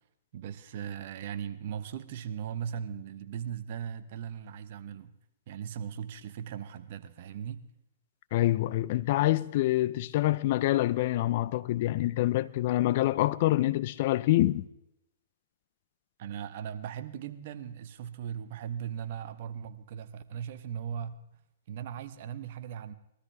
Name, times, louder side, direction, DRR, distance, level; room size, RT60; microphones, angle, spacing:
voice 1, 0.3-5.1 5.5-7.6 16.2-21.1 21.7-22.9, right 8 dB, 50° right, 1.1 m, -38 dB
voice 2, 8.3-14.7, left 16 dB, 50° left, 0.5 m, -26 dB
21.5 x 13.0 x 3.5 m
hypercardioid pair, 125°, 0 cm